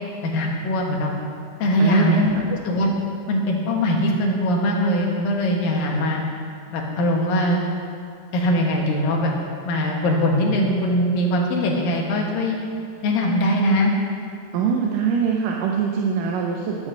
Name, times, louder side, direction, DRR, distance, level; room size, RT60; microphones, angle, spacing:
voice 1, 0.2-1.1 1.6-2.4 2.6-2.9 3.3-6.2 6.7-7.6 8.3-9.3 9.7-12.6 13.0-13.9, left 1 dB, 85° left, 0 dB, 3.3 m, -21 dB
voice 2, 1.8-2.4 14.5-16.9, right 6 dB, 80° right, 0 dB, 2.3 m, -23 dB
11.0 x 7.6 x 7.6 m, 2.3 s
omnidirectional pair, 3.9 m